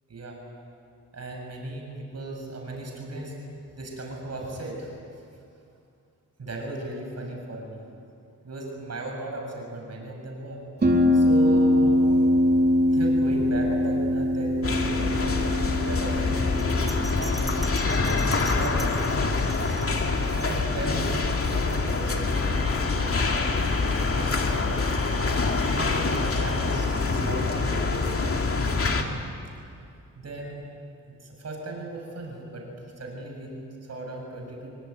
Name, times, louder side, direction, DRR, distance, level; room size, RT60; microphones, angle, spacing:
voice 1, 0.1-0.4 1.1-3.3 3.7-5.0 6.4-7.9 8.4-10.6 11.1-12.0 12.9-15.4 15.8-17.4 18.0-18.9 20.3-24.8 25.5-28.4 30.1-30.5 31.1-33.5 33.8-34.8, right 2 dB, 55° right, 0 dB, 6.8 m, -36 dB
Harp, 10.8-28.3, left 1 dB, 30° right, 3.9 m, -26 dB
sound 1, 14.6-29.0, left 3 dB, 45° left, 2.5 m, -25 dB
Bell, 16.6-20.9 21.3-21.4, equal, ahead, 2.3 m, -40 dB
26.5 x 23.5 x 9.5 m, 2.5 s
wide cardioid pair, 120°, 31 cm